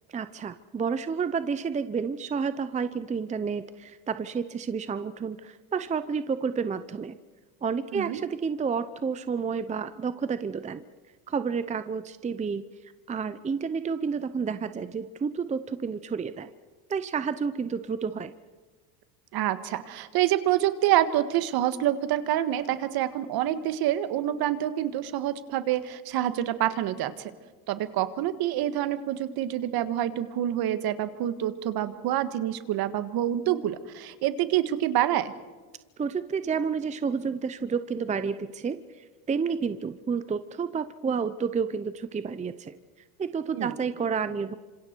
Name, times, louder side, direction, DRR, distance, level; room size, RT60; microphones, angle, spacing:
voice 1, 0.1-7.2 7.6-10.8 11.3-12.6 13.1-16.5 16.9-18.3 36.0-42.7 43.2-44.5, right 5 dB, 15° right, 12 dB, 0.7 m, -30 dB
voice 2, 19.3-27.3 27.7-35.3 43.5-43.7, right 12 dB, 55° right, 11 dB, 1.7 m, -27 dB
27.5 x 26.5 x 4.6 m, 1.4 s
supercardioid pair, 110°, 44 cm